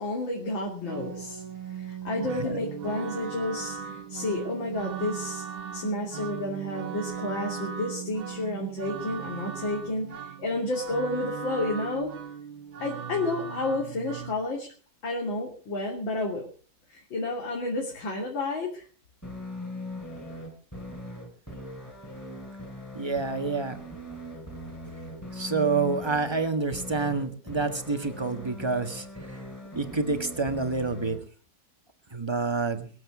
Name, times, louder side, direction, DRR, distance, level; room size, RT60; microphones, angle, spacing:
voice 1, 0.0-5.4 5.7-12.1 12.8-14.7 15.0-16.5 16.9-18.9, left 2 dB, 70° left, -1 dB, 3.7 m, -31 dB
sound 1, 0.9-14.3, right 7 dB, 90° right, 2.5 m, -38 dB
sound 2, 19.2-31.2, left 1 dB, 5° left, 4.4 m, -40 dB
voice 2, 22.9-23.8 25.3-29.4 29.7-31.2 32.1-32.9, right 4 dB, 15° right, 7 dB, 1.3 m, -28 dB
22.5 x 8.5 x 6.1 m, 0.41 s
omnidirectional pair, 2.2 m